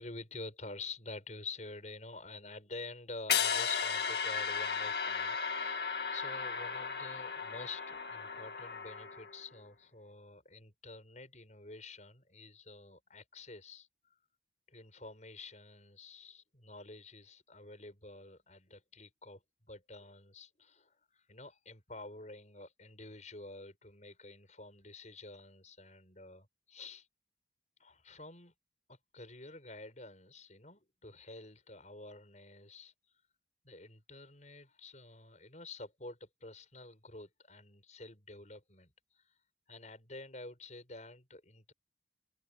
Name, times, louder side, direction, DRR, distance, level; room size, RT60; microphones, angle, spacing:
voice 1, 0.0-13.9 14.7-19.4 19.7-27.1 27.8-28.5 28.9-32.9 33.6-39.2 39.7-41.7, left 3 dB, 40° left, 7.1 m, -49 dB
sound 1, 3.3-9.4, left 6 dB, 60° left, 2.3 m, -35 dB
open air
head